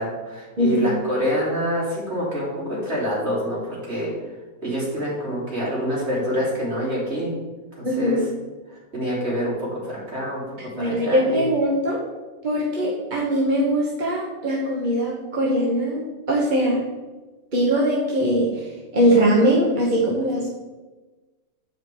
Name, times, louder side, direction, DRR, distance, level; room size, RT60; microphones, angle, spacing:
voice 1, 0.0-4.1 4.6-7.3 7.8-8.2 8.7-11.5, equal, 50° right, -6 dB, 3.3 m, -26 dB
voice 2, 0.6-1.0 7.8-8.2 10.7-12.0 12.4-16.8 17.5-18.7 18.9-20.5, equal, 35° right, -5 dB, 1.3 m, -21 dB
8.4 x 5.0 x 4.7 m, 1.2 s
omnidirectional pair, 1.4 m